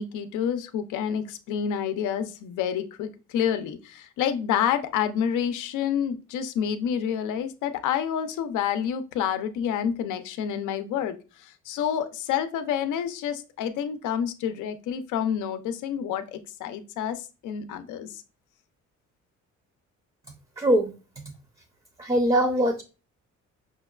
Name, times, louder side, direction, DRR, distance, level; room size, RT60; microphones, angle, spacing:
voice 1, 0.0-18.2, left 8 dB, 85° left, 10 dB, 0.5 m, -28 dB
voice 2, 20.6-21.0 22.0-22.8, right 1 dB, 15° right, 6 dB, 0.5 m, -22 dB
5.6 x 2.2 x 2.3 m, 0.32 s
cardioid pair, 90°, 30 cm